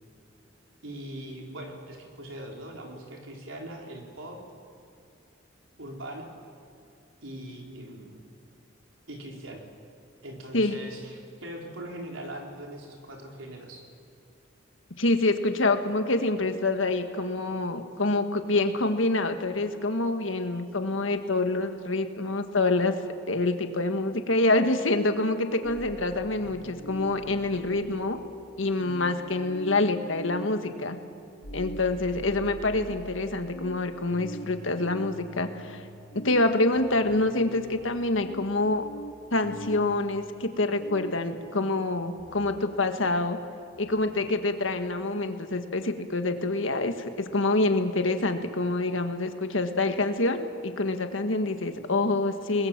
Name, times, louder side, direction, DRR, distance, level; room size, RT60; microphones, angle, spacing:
voice 1, 0.8-4.4 5.8-6.3 7.2-8.2 9.1-9.6 10.2-13.8, right 1 dB, 85° right, 1 dB, 4.2 m, -41 dB
voice 2, 15.0-23.0 23.3-28.2 28.6-31.0 31.5-35.8 36.1-38.8 39.3-43.4 43.8-52.7, left 2 dB, 80° left, 7 dB, 1.7 m, -26 dB
sound 1, 25.6-41.3 42.2-44.6, equal, 65° left, 7.7 m, -44 dB
28.5 x 20.5 x 7.5 m, 2.4 s
head